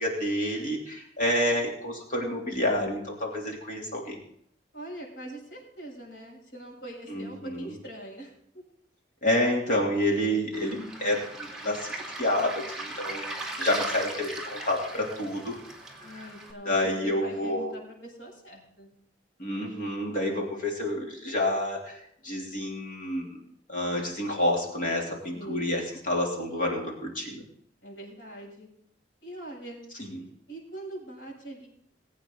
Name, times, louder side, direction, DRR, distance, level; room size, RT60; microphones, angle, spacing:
voice 1, 0.0-4.2 7.1-7.7 9.2-15.5 16.0-16.2 16.6-17.7 19.4-22.0 22.2-23.4 23.7-27.4 30.0-30.3, left 1 dB, 50° left, -1 dB, 3.1 m, -29 dB
voice 2, 4.7-8.6 16.0-18.9 25.3-25.8 27.8-28.7 29.2-29.8 30.5-31.7, right 1 dB, 85° left, -2 dB, 7.2 m, -43 dB
Waves surf, 10.5-16.5, right 2 dB, 5° right, 2.6 m, -38 dB
20.5 x 8.8 x 4.0 m, 0.68 s
head